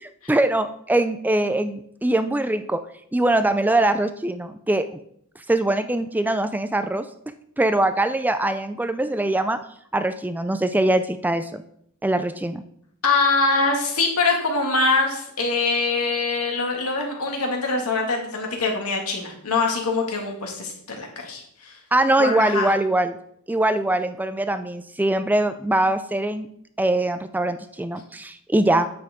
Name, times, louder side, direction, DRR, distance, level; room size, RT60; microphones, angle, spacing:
voice 1, 0.3-2.8 3.1-4.9 5.5-7.1 7.6-9.6 9.9-11.6 12.0-12.6 21.9-23.2 23.5-26.5 26.8-28.9, right 1 dB, 10° right, 10 dB, 0.3 m, -22 dB
voice 2, 13.0-21.7 22.2-22.7, left 3 dB, 80° left, 1 dB, 2.2 m, -23 dB
9.5 x 7.8 x 3.7 m, 0.70 s
head